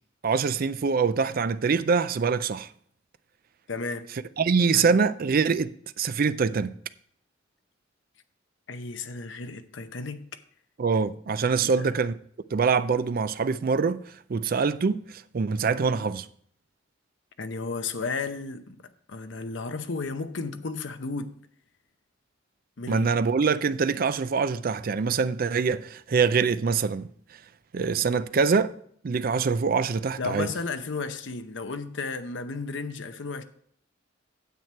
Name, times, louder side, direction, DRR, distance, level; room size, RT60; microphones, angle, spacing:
voice 1, 0.2-2.7 4.4-6.7 10.8-12.2 12.5-14.0 14.3-16.3 22.9-27.1 27.7-28.7 29.0-30.5, right 5 dB, 50° right, 0.4 m, -24 dB
voice 2, 3.7-4.0 4.7-5.0 8.7-10.4 11.6-11.9 17.4-18.8 19.1-21.4 22.8-23.1 30.2-33.4, left 4 dB, 65° left, 0.7 m, -33 dB
9.4 x 7.5 x 4.4 m
head